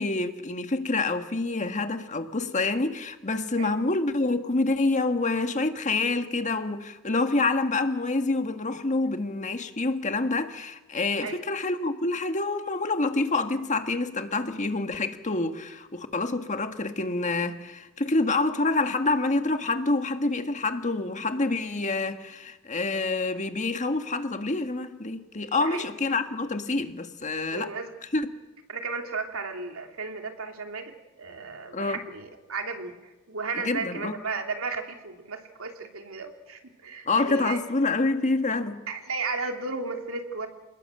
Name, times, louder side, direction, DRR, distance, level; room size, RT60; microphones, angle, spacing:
voice 1, 0.0-27.7 28.1-28.3 31.7-32.0 33.6-34.2 37.0-38.8, left 3 dB, 35° left, 1.6 m, -27 dB
voice 2, 27.5-27.9 28.7-37.6 38.9-40.5, right 4 dB, 80° right, 3.0 m, -34 dB
28.0 x 19.5 x 7.8 m
head